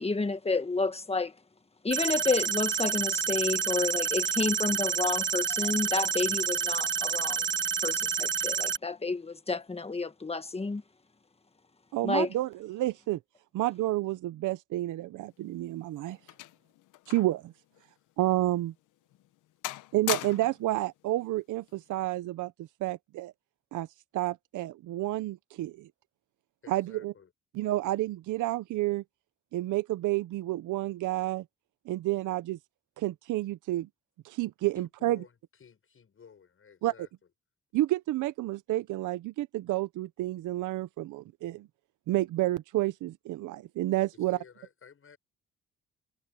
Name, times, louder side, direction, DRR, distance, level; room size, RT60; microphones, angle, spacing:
voice 1, 0.0-1.3 1.8-7.5 7.8-10.8 12.0-12.3, left 3 dB, 20° left, 1.7 m, -30 dB
sound 1, 1.9-8.8, right 7 dB, 40° right, 1.1 m, -29 dB
voice 2, 11.9-13.2 13.5-16.2 17.1-17.5 18.2-18.7 19.9-22.5 22.8-23.3 23.7-23.9 24.1-25.9 26.7-27.1 27.5-29.0 29.5-31.4 31.9-32.6 33.0-33.9 34.2-35.2 36.8-36.9 37.7-41.7 42.1-44.4, right 16 dB, 80° right, 0.8 m, -30 dB
sound 2, 15.3-17.5 17.7-17.9 18.5-18.7 19.1-19.4 19.6-20.7 21.7-22.0, left 16 dB, 90° left, 1.0 m, -38 dB
voice 3, 17.8-18.1 26.6-27.3 34.7-37.1 44.1-45.2, left 6 dB, 45° left, 7.1 m, -55 dB
cardioid pair, 90°, 30 cm